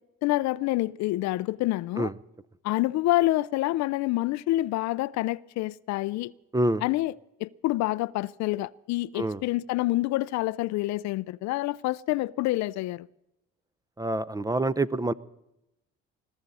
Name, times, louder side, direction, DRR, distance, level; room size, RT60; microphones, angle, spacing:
voice 1, 0.2-2.1 2.6-6.3 6.8-7.1 7.4-13.1, left 17 dB, 70° left, 0.4 m, -27 dB
voice 2, 14.0-15.1, right 2 dB, 10° right, 0.6 m, -26 dB
21.5 x 13.0 x 4.1 m
supercardioid pair, 70°, 29 cm